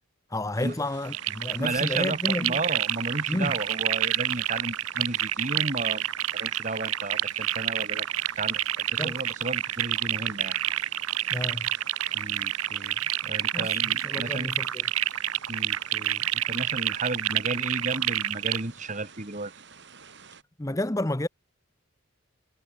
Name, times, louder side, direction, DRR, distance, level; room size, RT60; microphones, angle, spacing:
voice 1, 0.3-2.6 3.3-3.5 9.0-9.2 11.3-11.7 13.5-14.8 20.6-21.3, left 1 dB, 15° left, 0.8 m, -30 dB
sound 1, 0.5-20.4, right 6 dB, 55° right, 5.6 m, -51 dB
sound 2, 1.0-18.6, right 12 dB, 80° right, 1.8 m, -28 dB
voice 2, 1.6-6.0 6.3-8.1 8.4-10.6 12.1-14.5 15.5-19.5, right 2 dB, 35° right, 1.8 m, -33 dB
head